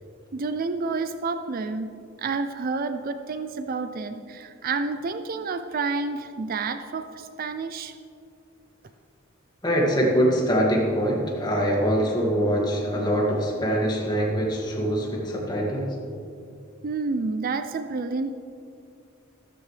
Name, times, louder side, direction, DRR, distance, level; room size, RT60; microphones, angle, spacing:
voice 1, 0.3-1.9 2.2-7.9 16.8-18.3, right 4 dB, 45° right, 10 dB, 0.4 m, -29 dB
voice 2, 9.6-16.0, equal, 20° left, -3 dB, 2.1 m, -23 dB
14.0 x 13.5 x 3.3 m, 2.4 s
head